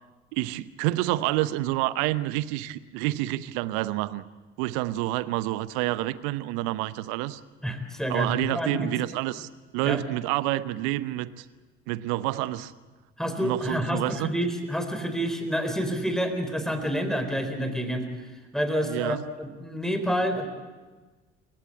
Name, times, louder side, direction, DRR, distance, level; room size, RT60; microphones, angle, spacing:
voice 1, 0.3-4.2 4.6-7.4 8.1-9.5 9.7-11.3 11.9-12.7 13.4-14.3 18.9-19.2, right 17 dB, 60° right, 17 dB, 0.9 m, -28 dB
voice 2, 7.6-8.9 9.8-10.0 13.2-18.1 18.5-20.5, equal, ahead, 7 dB, 4.0 m, -28 dB
28.0 x 16.0 x 8.6 m, 1.3 s
figure-of-eight pair, 55°, 35 cm